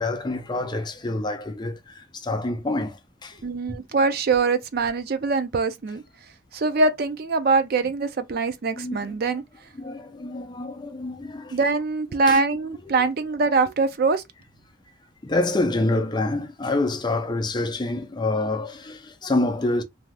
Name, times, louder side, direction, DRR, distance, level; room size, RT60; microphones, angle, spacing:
voice 1, 0.0-3.4 3.7-3.8 8.7-9.4 9.8-11.6 12.3-12.4 13.0-13.1 15.2-19.8, left 2 dB, 20° left, 0.5 m, -27 dB
voice 2, 3.4-6.0 6.5-9.4 11.5-14.2, right 3 dB, 50° right, 0.4 m, -23 dB
2.6 x 2.3 x 3.3 m
head